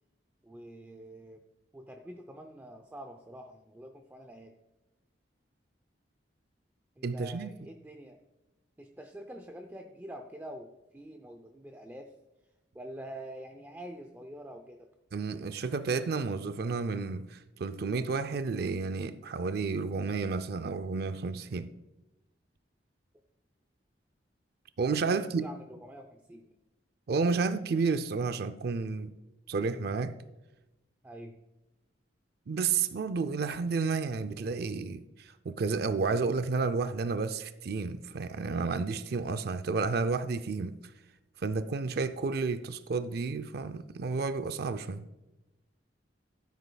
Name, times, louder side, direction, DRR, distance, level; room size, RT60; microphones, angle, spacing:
voice 1, 0.4-1.4 1.7-4.5 7.0-8.2 8.8-12.2 12.7-14.9 25.1-26.5 31.0-31.4, right 1 dB, 10° right, 0.5 m, -46 dB
voice 2, 7.0-7.5 15.1-21.7 24.8-25.5 27.1-29.1 29.5-30.2 32.5-40.8 41.4-45.0, right 4 dB, 60° right, 0.4 m, -31 dB
14.0 x 8.1 x 2.3 m
head